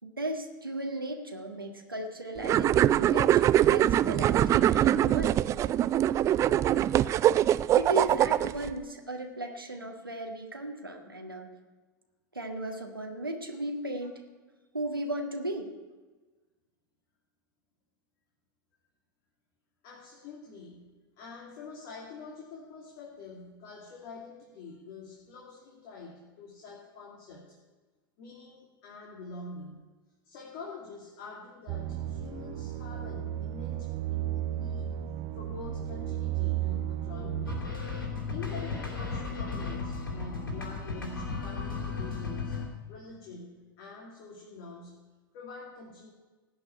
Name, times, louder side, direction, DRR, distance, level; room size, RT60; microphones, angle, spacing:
voice 1, 0.0-5.3 7.0-7.1 7.7-11.5 12.3-14.1 14.7-15.7, right 1 dB, 90° right, 2 dB, 1.8 m, -36 dB
sound 1, 2.4-8.7, right 12 dB, 25° right, 0.3 m, -23 dB
voice 2, 19.8-27.6 28.2-29.9 30.2-35.0 35.3-37.7 38.0-42.6 42.9-43.5 43.8-45.0 45.3-46.1, left 3 dB, 50° left, -1 dB, 2.6 m, -46 dB
sound 2, 31.7-37.6, right 11 dB, 45° right, 1.1 m, -33 dB
sound 3, 37.5-42.7, left 4 dB, 75° left, 3.3 m, -35 dB
17.0 x 5.8 x 9.7 m, 1.3 s
figure-of-eight pair, 90°, 11 cm